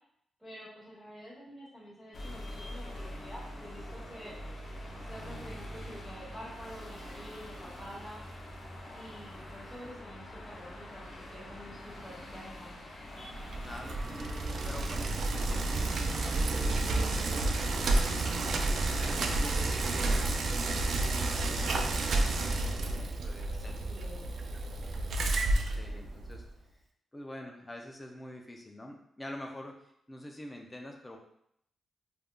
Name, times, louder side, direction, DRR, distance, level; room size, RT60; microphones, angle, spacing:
voice 1, 0.4-4.3 5.0-8.2 8.9-12.8 23.6-24.3, equal, 5° right, -11 dB, 1.1 m, -48 dB
sound 1, 2.1-19.1, left 1 dB, 50° left, 0.7 m, -45 dB
Bicycle, 13.3-26.5, right 2 dB, 65° right, 0.3 m, -31 dB
voice 2, 13.5-14.3 14.6-18.3 18.9-23.7 24.8-26.4 27.1-31.2, left 1 dB, 15° left, 2 dB, 0.4 m, -47 dB
sound 2, 13.8-20.2, right 2 dB, 35° right, 0.6 m, -42 dB
3.4 x 2.4 x 2.2 m, 0.72 s
cardioid pair, 110°, 0 cm